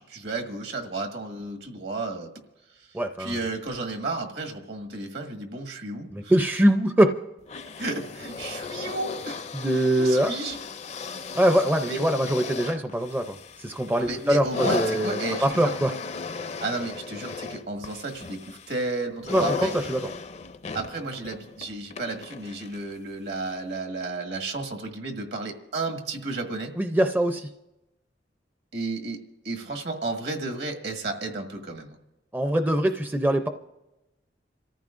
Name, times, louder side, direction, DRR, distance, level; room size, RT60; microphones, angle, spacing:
voice 1, 0.0-2.3 2.8-6.3 7.8-9.5 9.7-10.6 11.8-12.0 14.0-15.7 16.6-19.7 20.7-26.7 28.7-32.0, right 3 dB, 70° right, 4 dB, 1.7 m, -33 dB
voice 2, 2.9-3.4 6.1-7.1 9.5-10.3 11.3-15.9 19.3-20.0 26.8-27.5 32.3-33.5, right 1 dB, 10° right, 7 dB, 0.5 m, -23 dB
sound 1, 7.5-22.9 23.7-23.8, left 4 dB, 40° left, 0.5 m, -35 dB
27.5 x 14.5 x 2.5 m, 0.96 s
head